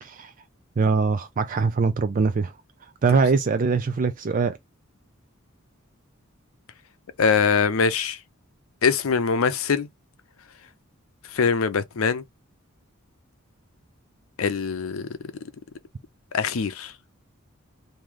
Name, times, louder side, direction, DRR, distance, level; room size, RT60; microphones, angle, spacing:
voice 1, 0.0-0.3 0.8-2.5 3.0-4.6, right 4 dB, 40° right, 0.4 m, -22 dB
voice 2, 7.2-8.2 8.8-9.9 11.3-12.2 14.4-15.2 16.3-16.9, left 5 dB, 80° left, 0.6 m, -23 dB
3.1 x 2.7 x 3.6 m
head